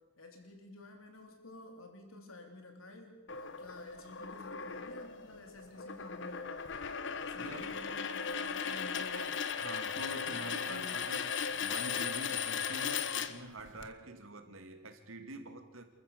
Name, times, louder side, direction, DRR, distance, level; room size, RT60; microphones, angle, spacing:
voice 1, 0.2-6.7 7.1-9.4 10.0-10.4 10.7-11.0, left 2 dB, 85° left, 4 dB, 3.6 m, -51 dB
sound 1, 3.3-13.9, left 6 dB, 60° left, 1.1 m, -37 dB
voice 2, 7.4-7.8 8.4-8.5 9.6-15.8, right 1 dB, 80° right, 7 dB, 2.4 m, -46 dB
28.5 x 14.5 x 6.8 m, 1.1 s
head